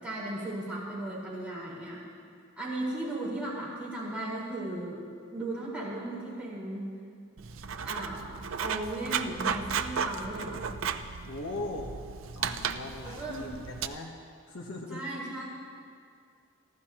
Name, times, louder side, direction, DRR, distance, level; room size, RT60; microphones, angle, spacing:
voice 1, 0.0-2.0 2.6-5.0 5.3-6.9 7.8-10.6 13.1-13.5 14.9-15.4, right 1 dB, 5° right, -8 dB, 4.5 m, -36 dB
Writing, 7.4-13.9, right 6 dB, 75° right, 0.6 m, -34 dB
voice 2, 11.3-11.9 12.4-14.1 14.5-15.1, left 2 dB, 75° left, 0 dB, 1.1 m, -39 dB
29.5 x 12.0 x 2.9 m, 2.2 s
head